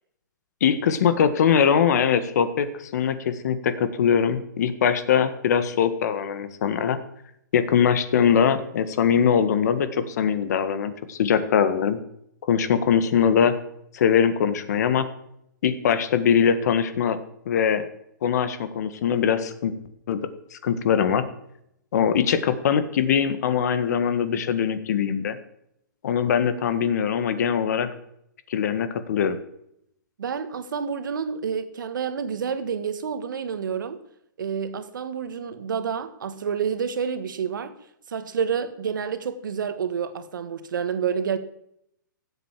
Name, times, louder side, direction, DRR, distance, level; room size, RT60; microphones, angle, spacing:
voice 1, 0.6-7.0 7.5-12.0 12.5-13.5 13.9-15.1 15.6-17.2 17.5-17.9 18.2-19.7 20.1-20.2 20.5-21.2 21.9-25.4 26.0-27.9 28.5-29.4, left 7 dB, 55° left, 1.7 m, -22 dB
voice 2, 30.2-34.0 34.4-37.7 38.1-41.4, right 7 dB, 75° right, 1.8 m, -29 dB
16.0 x 8.4 x 7.5 m
hypercardioid pair, 160°, 11 cm